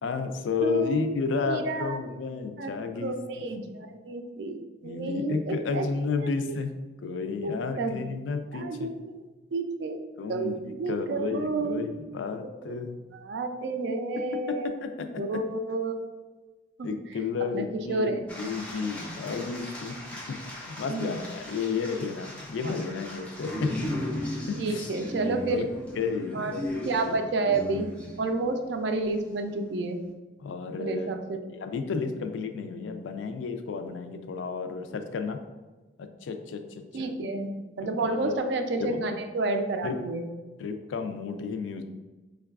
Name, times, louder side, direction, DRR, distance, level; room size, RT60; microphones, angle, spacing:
voice 1, 0.0-3.4 4.8-6.7 7.0-8.9 10.2-13.0 14.2-15.1 15.3-15.4 16.8-23.7 24.5-24.9 25.5-25.7 26.0-26.6 26.9-27.2 27.5-27.6 30.4-31.1 31.5-35.4 36.0-36.6 36.9-37.1 37.8-38.4 38.8-39.0 39.8-40.0 40.6-41.8, left 5 dB, 80° left, 7 dB, 0.3 m, -32 dB
voice 2, 0.6-1.1 1.5-2.0 2.6-5.8 6.2-6.3 7.4-8.0 8.5-9.2 9.5-10.0 10.3-11.8 12.6-12.8 13.3-14.8 15.2-16.1 16.8-16.9 17.5-18.5 20.9-21.1 22.6-22.7 24.6-25.6 26.3-26.5 26.9-27.9 28.2-30.0 30.8-31.4 36.9-37.5 37.8-40.3, right 3 dB, 65° right, 6 dB, 0.3 m, -30 dB
sound 1, 18.3-28.6 29.1-29.5, left 1 dB, 5° left, 0.4 m, -37 dB
4.5 x 2.3 x 2.3 m, 1.2 s
head